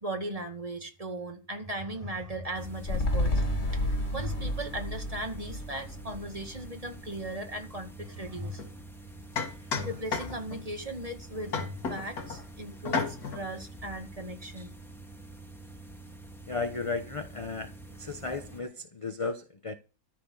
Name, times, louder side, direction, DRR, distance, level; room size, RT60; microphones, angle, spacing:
voice 1, 0.0-8.6 9.6-14.7, right 1 dB, 25° right, 2.0 m, -38 dB
sound 1, 2.5-18.6, right 2 dB, ahead, 1.6 m, -47 dB
sound 2, 2.8-7.4 7.7-7.8, left 1 dB, 45° left, 2.2 m, -31 dB
sound 3, 8.6-8.7 9.4-10.7 11.5-12.4 12.9-13.5, left 5 dB, 85° left, 2.3 m, -32 dB
voice 2, 16.5-19.8, left 3 dB, 25° left, 0.8 m, -35 dB
13.5 x 6.4 x 8.0 m
omnidirectional pair, 1.6 m